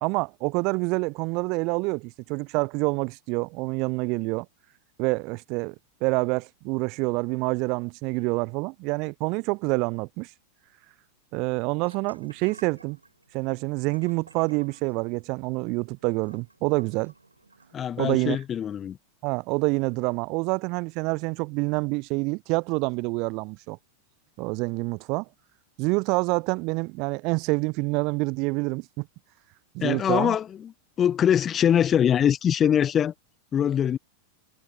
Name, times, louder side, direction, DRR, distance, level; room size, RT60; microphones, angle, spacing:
voice 1, 0.0-4.5 5.0-5.7 6.0-10.3 11.3-13.0 13.3-17.1 18.0-18.4 19.2-23.8 24.4-25.3 25.8-29.1 29.7-30.4, right 28 dB, 45° right, 0.4 m, -27 dB
sound 1, 11.8-17.8, right 3 dB, 80° right, 6.8 m, -54 dB
voice 2, 17.7-19.0 29.8-33.1 33.5-34.0, left 9 dB, 25° left, 0.8 m, -23 dB
figure-of-eight pair, 90°, 0 cm